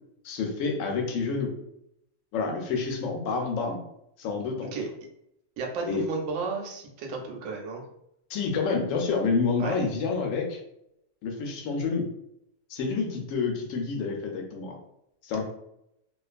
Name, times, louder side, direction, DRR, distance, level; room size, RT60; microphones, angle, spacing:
voice 1, 0.2-1.5 2.3-3.8 4.2-4.7 5.9-6.1 8.3-10.6 11.2-12.1 12.7-14.8 15.2-15.4, left 4 dB, 75° left, 2 dB, 0.9 m, -28 dB
voice 2, 5.6-7.8 9.6-9.8, right 4 dB, 85° right, 1 dB, 1.0 m, -33 dB
2.4 x 2.3 x 2.4 m, 0.77 s
omnidirectional pair, 1.4 m